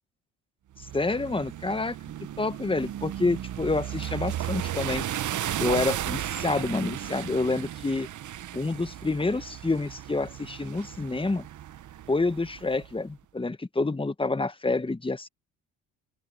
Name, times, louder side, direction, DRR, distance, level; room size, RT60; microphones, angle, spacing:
sound 1, 0.8-12.9, right 12 dB, 50° right, 0.9 m, -35 dB
voice 1, 0.9-1.9 2.4-5.0 5.6-8.1 8.5-11.5 12.1-15.3, left 3 dB, 15° left, 1.5 m, -28 dB
open air
supercardioid pair, 70°, 39 cm